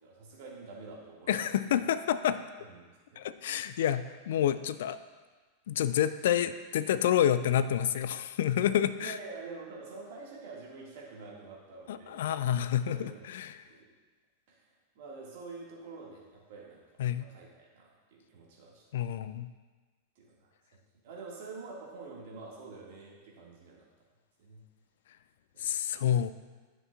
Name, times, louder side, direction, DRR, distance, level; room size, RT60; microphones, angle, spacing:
voice 1, 0.0-1.9 2.6-3.2 6.0-6.1 7.1-7.2 8.7-12.2 12.9-13.2 13.6-13.9 14.5-14.7 15.0-19.1 20.2-20.5 21.0-23.9 24.4-24.6 25.5-26.0, right 4 dB, 50° right, -3 dB, 1.8 m, -47 dB
voice 2, 1.3-2.4 3.2-5.0 5.7-9.2 11.9-13.6 17.0-17.3 18.9-19.5 25.6-26.3, left 10 dB, 60° left, 13 dB, 0.3 m, -28 dB
10.5 x 5.8 x 2.4 m, 1.4 s
figure-of-eight pair, 90°, 0 cm